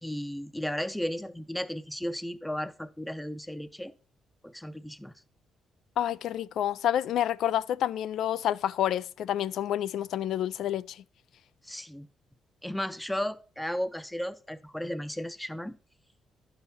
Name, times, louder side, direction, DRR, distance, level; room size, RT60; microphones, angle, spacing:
voice 1, 0.0-3.9 4.4-5.1 11.6-12.1 12.6-15.7, left 1 dB, 5° left, 0.6 m, -34 dB
voice 2, 6.0-11.0, left 11 dB, 75° left, 0.3 m, -29 dB
10.5 x 5.7 x 4.4 m
cardioid pair, 90°, 0 cm